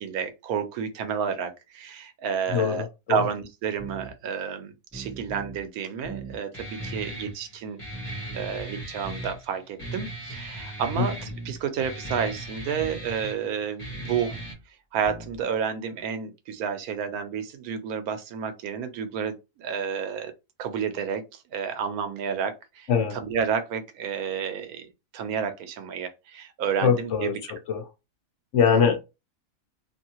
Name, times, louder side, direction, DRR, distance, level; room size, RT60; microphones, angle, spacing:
voice 1, 0.0-7.8 8.3-14.4 14.9-20.3 20.6-21.2 21.5-24.9 25.1-27.4 28.6-29.0, right 7 dB, 85° right, 1.1 m, -30 dB
voice 2, 2.5-3.3 11.0-11.1 22.9-23.2 26.8-27.8 28.5-29.0, left 6 dB, 65° left, 0.9 m, -23 dB
sound 1, 3.8-4.1 4.9-5.6 6.0-6.4 6.8-7.1 7.9-8.6 9.0-9.4 9.8-10.1 10.9-11.6 12.0-12.4 12.8-13.1 13.9-14.6 15.0-15.4, right 2 dB, 10° right, 1.0 m, -40 dB
Guitar, 6.5-14.5, right 1 dB, 25° left, 0.9 m, -38 dB
2.9 x 2.7 x 2.8 m
omnidirectional pair, 1.5 m